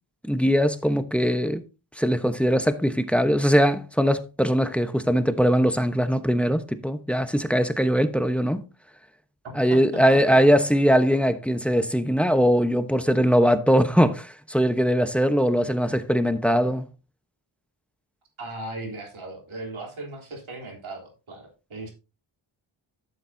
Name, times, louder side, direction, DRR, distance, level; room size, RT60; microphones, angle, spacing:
voice 1, 0.3-1.6 2.0-8.6 9.6-16.9, equal, ahead, 1.0 m, -21 dB
voice 2, 9.4-10.4 18.4-21.9, right 2 dB, 75° right, 3.6 m, -37 dB
12.0 x 7.3 x 2.7 m
cardioid pair, 60°, 49 cm